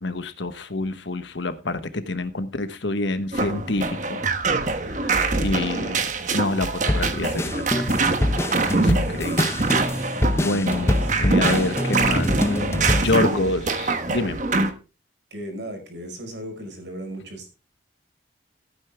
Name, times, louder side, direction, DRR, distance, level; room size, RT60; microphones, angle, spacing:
voice 1, 0.0-4.2 5.0-5.1 5.4-6.1 6.3-7.5 7.9-8.0 8.6-9.7 10.4-12.6 12.9-14.4, left 2 dB, 75° left, 1.2 m, -27 dB
sound 1, 3.3-14.7, right 3 dB, 40° right, 1.2 m, -24 dB
sound 2, 6.9-13.0, left 1 dB, 15° left, 0.7 m, -25 dB
voice 2, 10.4-13.6 15.3-17.5, equal, 70° right, 5.0 m, -36 dB
15.0 x 9.2 x 3.5 m
head